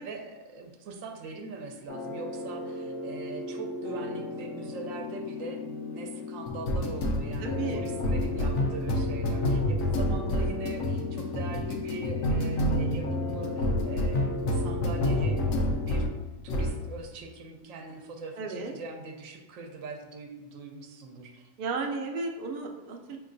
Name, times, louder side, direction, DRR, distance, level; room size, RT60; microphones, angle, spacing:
voice 1, 0.0-16.1 16.4-21.5 23.1-23.2, right 3 dB, 80° right, 3 dB, 1.0 m, -42 dB
sound 1, 1.9-16.2 16.5-16.8, left 1 dB, 90° left, 1.0 m, -29 dB
voice 2, 7.4-7.8 10.1-10.5 18.4-18.7 21.6-23.2, right 4 dB, 60° right, 2 dB, 0.6 m, -34 dB
5.4 x 2.9 x 2.5 m, 1.1 s
omnidirectional pair, 1.4 m